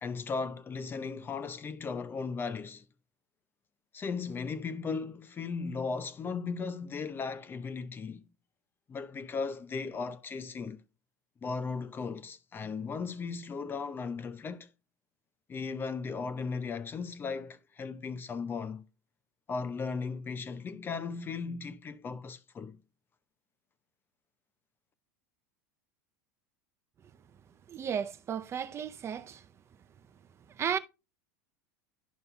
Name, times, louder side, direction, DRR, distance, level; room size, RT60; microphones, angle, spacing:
voice 1, 0.0-2.8 3.9-8.2 8.9-10.8 11.4-14.7 15.5-18.8 19.5-22.8, left 5 dB, 25° left, 0.7 m, -36 dB
voice 2, 27.7-29.4 30.6-30.8, right 8 dB, 30° right, 0.6 m, -34 dB
11.5 x 5.4 x 2.2 m
supercardioid pair, 110°, 9 cm